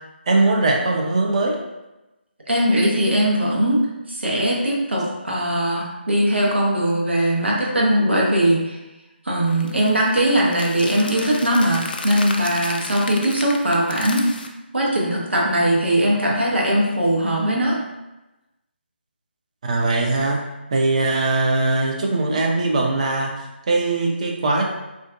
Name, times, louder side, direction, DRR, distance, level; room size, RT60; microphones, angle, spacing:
voice 1, 0.3-1.5 19.6-20.4 20.7-23.3 23.7-24.7, right 2 dB, 35° right, 1 dB, 0.5 m, -20 dB
voice 2, 2.5-3.8 4.1-8.8 9.2-14.2 14.7-17.8, right 1 dB, 75° right, -3 dB, 0.9 m, -20 dB
sound 1, 9.5-14.5, left 3 dB, 55° left, 0.3 m, -34 dB
3.4 x 2.5 x 2.4 m, 1.0 s
figure-of-eight pair, 155°, 6 cm